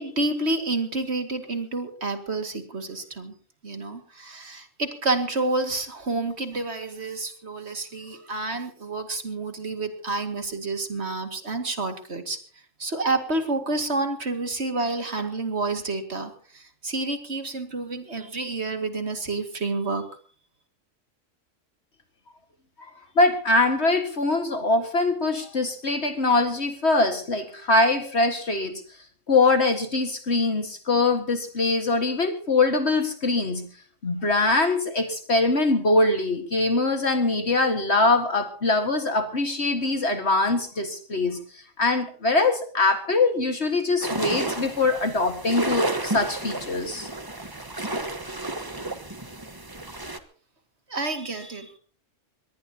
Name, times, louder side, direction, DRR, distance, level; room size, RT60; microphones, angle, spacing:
voice 1, 0.0-3.4 3.6-12.4 12.8-20.0 50.9-51.7, right 3 dB, 60° right, 6 dB, 2.5 m, -29 dB
voice 2, 23.2-28.7 29.3-33.7 34.0-47.1, left 2 dB, 60° left, 6 dB, 2.1 m, -23 dB
sound 1, 44.0-50.2, right 2 dB, 20° right, 1.3 m, -31 dB
23.5 x 18.5 x 2.9 m, 0.42 s
omnidirectional pair, 1.3 m